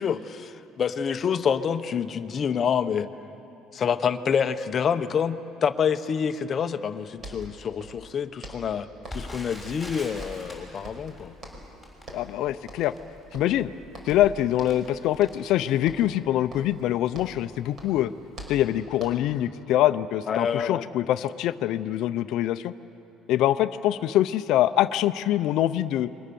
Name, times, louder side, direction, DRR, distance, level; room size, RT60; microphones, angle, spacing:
voice 1, 0.0-3.1 3.7-11.3 20.3-20.9, left 7 dB, 35° left, 10 dB, 0.9 m, -27 dB
sound 1, 6.9-7.0 7.2-8.1 8.4-9.4 9.7-10.6 10.8-11.8 12.0-12.4 12.7-13.0 13.3-14.3 14.6-14.9 15.2-15.6 15.9-17.5 17.8-19.4, equal, 40° right, 4.9 m, -44 dB
Crackle, 9.0-16.0 16.6-16.7 17.0-17.3 17.9-18.1 18.4-18.5, left 1 dB, 5° right, 6.3 m, -43 dB
voice 2, 12.1-12.9 13.3-13.7 14.1-18.1 18.5-22.7 23.3-26.1, left 13 dB, 60° left, 10 dB, 0.6 m, -24 dB
28.0 x 23.5 x 7.0 m, 2.9 s
cardioid pair, 150°, 0 cm